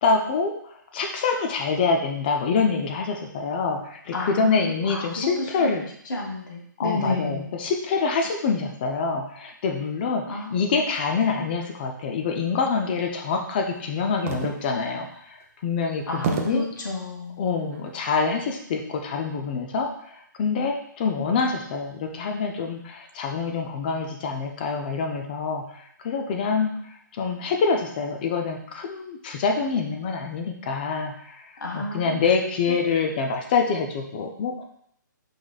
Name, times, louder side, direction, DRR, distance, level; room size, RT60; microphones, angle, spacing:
voice 1, 0.0-0.6 0.9-5.9 6.8-16.7 17.4-26.7 27.1-31.5 31.7-34.6, left 5 dB, 30° left, 3 dB, 0.4 m, -26 dB
voice 2, 4.1-5.7 6.1-7.5 10.3-10.7 16.1-17.5 31.6-32.2, left 2 dB, 75° left, -1 dB, 1.5 m, -30 dB
sound 1, 14.3-14.9 15.4-15.5 16.2-16.8 17.5-18.0, right 5 dB, 40° right, 0.5 m, -29 dB
4.7 x 3.9 x 2.3 m, 0.68 s
hypercardioid pair, 155°, 11 cm